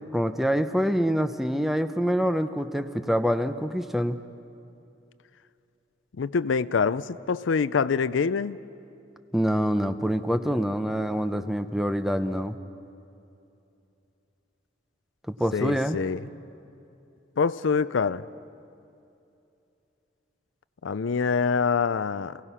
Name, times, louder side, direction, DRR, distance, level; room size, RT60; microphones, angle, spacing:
voice 1, 0.1-4.2 9.3-12.6 15.3-16.0, equal, ahead, 9 dB, 0.6 m, -26 dB
voice 2, 6.2-8.6 15.5-16.2 17.4-18.2 20.8-22.4, left 5 dB, 85° left, 15 dB, 0.5 m, -25 dB
28.5 x 17.5 x 5.6 m, 2.7 s
head